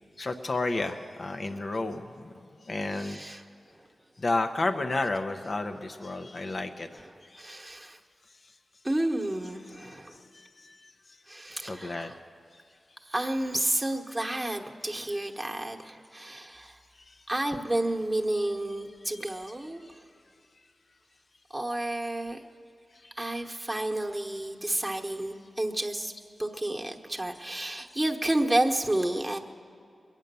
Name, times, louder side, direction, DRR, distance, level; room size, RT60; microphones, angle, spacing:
voice 1, 0.2-2.1 2.7-3.2 4.2-6.9 7.3-7.4 10.6-10.8 11.6-12.1 17.1-17.2 19.1-19.2, left 2 dB, 55° left, 7 dB, 0.7 m, -31 dB
voice 2, 2.9-3.8 6.9-8.0 8.8-10.2 11.3-12.2 13.0-16.8 17.3-20.0 21.5-22.4 23.1-26.1 26.4-29.4, right 1 dB, 15° right, 0 dB, 1.2 m, -31 dB
21.5 x 9.0 x 6.8 m, 2.4 s
cardioid pair, 55°, 0 cm